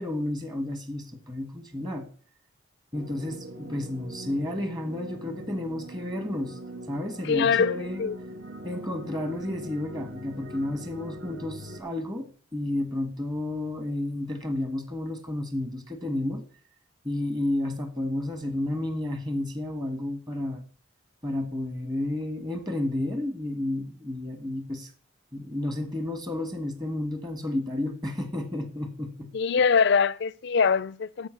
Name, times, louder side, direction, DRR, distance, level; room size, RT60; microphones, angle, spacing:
voice 1, 0.0-2.1 2.9-6.6 6.9-8.1 8.6-16.4 17.0-20.6 21.2-24.9 25.3-29.3, left 1 dB, 20° right, 1.3 m, -31 dB
sound 1, 2.9-11.8, right 1 dB, 60° right, 1.2 m, -42 dB
voice 2, 7.2-8.2 29.3-31.3, left 6 dB, 55° left, 0.4 m, -23 dB
13.5 x 4.8 x 6.1 m
head